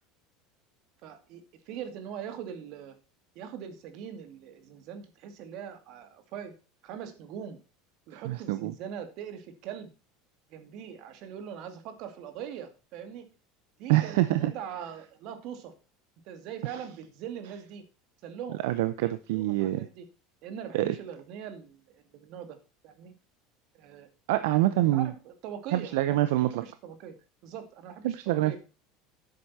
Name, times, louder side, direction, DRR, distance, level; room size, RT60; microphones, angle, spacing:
voice 1, 1.0-2.9 3.4-6.5 6.8-7.6 8.1-9.9 10.5-13.3 13.8-15.7 16.2-17.8 18.2-18.6 19.0-20.1 20.4-22.6 22.8-23.1 23.7-24.1 24.3-24.6 24.9-26.2 26.5-27.1 27.4-28.6, right 8 dB, 60° right, 9 dB, 2.2 m, -41 dB
voice 2, 8.1-8.7 13.9-14.5 16.7-16.8 18.6-19.9 20.7-20.9 24.3-25.1 25.7-26.6 28.0-28.6, right 15 dB, 80° right, 13 dB, 0.7 m, -26 dB
10.5 x 7.9 x 4.2 m, 0.33 s
supercardioid pair, 110°, 0 cm